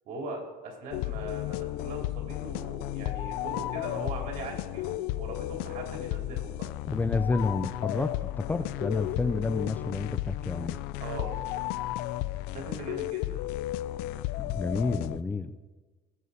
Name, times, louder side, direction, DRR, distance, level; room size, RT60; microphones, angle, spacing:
voice 1, 0.0-6.7 11.0-11.4 12.5-13.4, right 2 dB, 60° right, 0 dB, 3.3 m, -40 dB
sound 1, 0.9-15.2, left 16 dB, 75° left, 0.4 m, -33 dB
voice 2, 6.9-10.8 14.4-15.5, left 3 dB, 10° left, 9 dB, 0.4 m, -30 dB
19.0 x 8.1 x 4.1 m, 1.3 s
cardioid pair, 150°, 17 cm